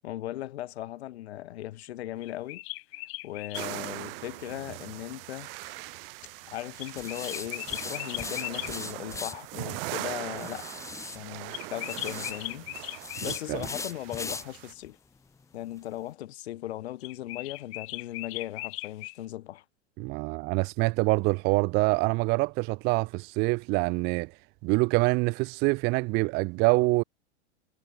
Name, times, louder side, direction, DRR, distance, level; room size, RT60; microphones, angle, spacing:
voice 1, 0.0-2.6 3.2-5.5 6.5-10.7 11.1-15.0 15.5-19.6, left 14 dB, 65° left, 5.8 m, -38 dB
sound 1, 2.2-3.7 6.8-8.7 11.5-13.4 17.0-19.2, left 25 dB, 40° left, 1.3 m, -38 dB
sound 2, 3.5-14.7, right 23 dB, 55° right, 5.1 m, -41 dB
sound 3, 5.6-5.9 7.0-9.3 10.4-11.2 11.8-12.3 13.0-14.4 14.8-14.9 15.4-15.5 15.8-15.9, left 4 dB, 10° left, 1.1 m, -38 dB
voice 2, 13.3-13.6 20.0-24.3 24.6-27.0, right 25 dB, 30° right, 0.4 m, -25 dB
hypercardioid pair, 110°, 34 cm